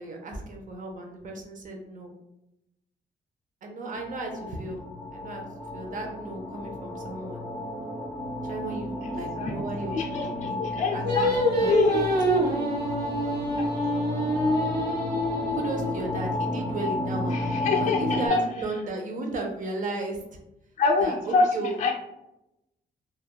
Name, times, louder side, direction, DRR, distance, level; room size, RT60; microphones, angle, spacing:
voice 1, 0.0-2.1 3.6-4.8 5.1-5.4 5.7-7.4 8.4-11.7 15.5-20.2 21.0-21.7, right 2 dB, 45° right, 2 dB, 0.6 m, -35 dB
sound 1, 3.9-18.3, left 2 dB, 20° right, 1.1 m, -32 dB
voice 2, 9.0-9.5 9.9-11.3 11.6-12.0 13.6-13.7 13.9-14.1 17.3-18.4 20.8-21.9, left 4 dB, 40° left, 1 dB, 0.4 m, -26 dB
Singing, 11.0-16.3, equal, 65° right, 1.1 m, -26 dB
3.3 x 2.3 x 2.2 m, 0.87 s
wide cardioid pair, 155°, 18 cm